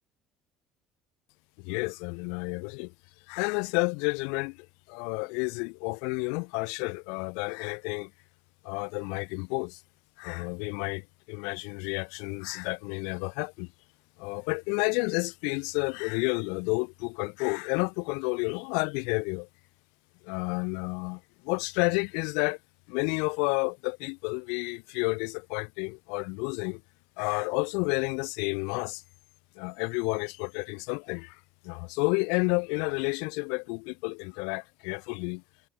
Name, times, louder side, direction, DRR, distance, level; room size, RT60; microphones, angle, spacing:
voice 1, 1.6-2.9 3.3-8.1 8.6-9.8 10.2-13.7 14.2-19.5 20.2-22.6 22.9-26.8 27.2-29.0 29.5-35.4, left 36 dB, 80° left, 4.4 m, -31 dB
supercardioid pair, 90°, 0 cm